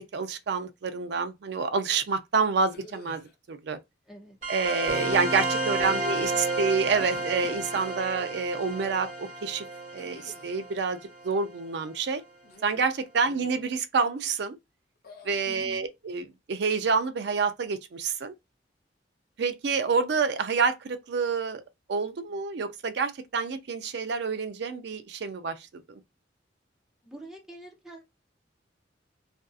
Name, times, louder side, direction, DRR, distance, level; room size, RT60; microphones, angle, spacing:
voice 1, 0.0-3.2 3.5-3.8 4.5-9.7 9.9-12.2 12.6-14.6 15.2-18.3 19.4-21.6 21.9-26.0, right 5 dB, 65° right, 0.4 m, -28 dB
sound 1, 2.7-3.3 4.8-5.5 6.7-8.4 10.0-10.7 12.4-12.9 13.3-13.6 15.0-15.5, left 2 dB, 55° left, 0.6 m, -49 dB
voice 2, 4.1-4.4 15.3-15.9 27.0-28.0, right 1 dB, 5° right, 0.6 m, -46 dB
sound 2, 4.4-11.5, right 2 dB, 40° right, 1.4 m, -32 dB
2.6 x 2.5 x 2.3 m
head